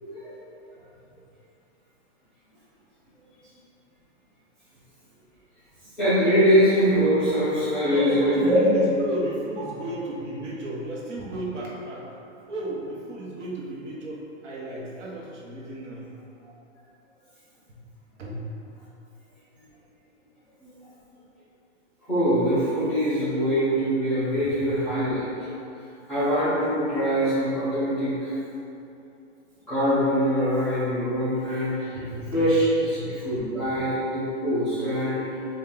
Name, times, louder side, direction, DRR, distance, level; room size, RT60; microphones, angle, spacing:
voice 1, 0.0-0.4 6.0-8.6 20.6-20.7 22.1-25.5 26.1-28.3 29.7-32.0 32.3-32.7 33.2-35.5, equal, ahead, -18 dB, 0.7 m, -23 dB
voice 2, 7.9-12.1 12.3-16.0 17.7-17.8 18.2-18.4 31.9-32.5 32.8-33.2, right 2 dB, 70° right, -5 dB, 1.2 m, -33 dB
4.4 x 2.7 x 3.8 m, 2.7 s
hypercardioid pair, 165°, 38 cm